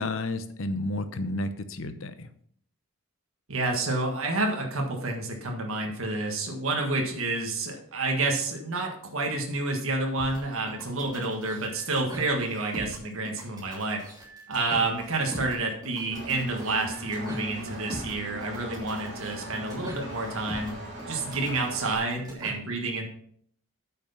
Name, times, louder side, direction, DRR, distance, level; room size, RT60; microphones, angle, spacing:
voice 1, 0.0-2.3, left 2 dB, 65° left, 10 dB, 0.8 m, -31 dB
voice 2, 3.5-14.0 14.5-20.7 21.1-23.1, right 2 dB, 70° right, 1 dB, 1.6 m, -29 dB
sound 1, 10.2-22.5, equal, 20° right, 3.2 m, -43 dB
Engine, 16.1-22.0, right 1 dB, 50° right, 3.2 m, -39 dB
8.6 x 6.0 x 5.6 m, 0.63 s
head